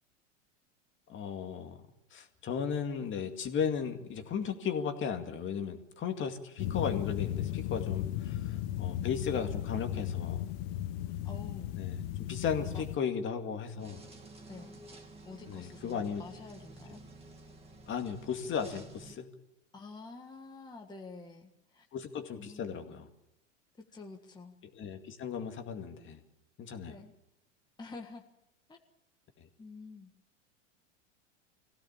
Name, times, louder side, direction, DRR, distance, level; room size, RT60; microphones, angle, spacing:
voice 1, 1.1-1.8 2.1-10.5 11.8-12.0 12.3-14.0 15.5-16.2 17.9-19.3 21.9-23.1 24.7-26.2 26.6-26.9 29.4-29.5, left 7 dB, 30° left, 6 dB, 2.3 m, -35 dB
sound 1, 6.6-13.0, left 12 dB, 55° left, 1.1 m, -35 dB
voice 2, 8.2-9.2 11.0-11.8 12.6-12.8 14.5-14.8 15.2-17.0 19.7-21.9 22.3-22.8 23.8-24.6 26.9-27.1 27.8-28.3 28.7-28.8 29.6-30.1, left 3 dB, 10° left, 2 dB, 1.7 m, -49 dB
sound 2, 13.8-19.2, right 2 dB, 15° right, 3.0 m, -51 dB
22.0 x 16.5 x 7.3 m, 0.87 s
hypercardioid pair, 110°, 38 cm